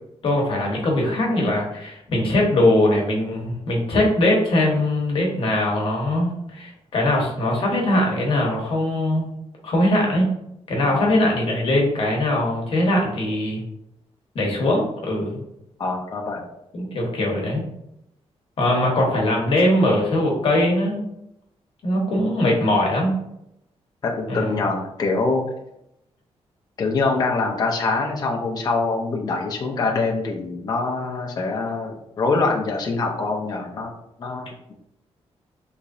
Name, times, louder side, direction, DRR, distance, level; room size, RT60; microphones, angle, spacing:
voice 1, 0.2-9.3 9.6-10.3 10.7-13.6 14.3-15.4 16.7-17.6 18.6-21.0 21.8-23.2 24.3-24.6, left 1 dB, 55° left, -1 dB, 1.0 m, -21 dB
voice 2, 10.8-11.2 15.8-16.4 24.0-25.4 26.8-33.9 34.2-34.7, left 3 dB, 35° left, 0 dB, 0.5 m, -24 dB
3.7 x 3.0 x 2.5 m, 0.81 s
wide cardioid pair, 170°, 11 cm